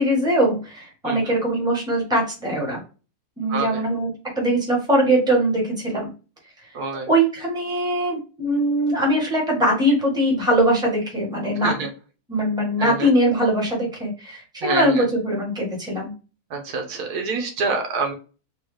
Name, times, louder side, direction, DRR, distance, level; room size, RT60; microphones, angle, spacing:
voice 1, 0.0-2.8 3.4-4.1 4.4-6.1 7.1-11.7 12.3-16.1, right 1 dB, 5° right, -2 dB, 1.2 m, -21 dB
voice 2, 1.0-1.3 3.5-3.8 6.7-7.1 11.6-11.9 12.8-13.1 14.6-15.1 16.5-18.1, right 4 dB, 80° right, 4 dB, 1.4 m, -27 dB
4.0 x 2.3 x 3.2 m, 0.34 s
omnidirectional pair, 1.7 m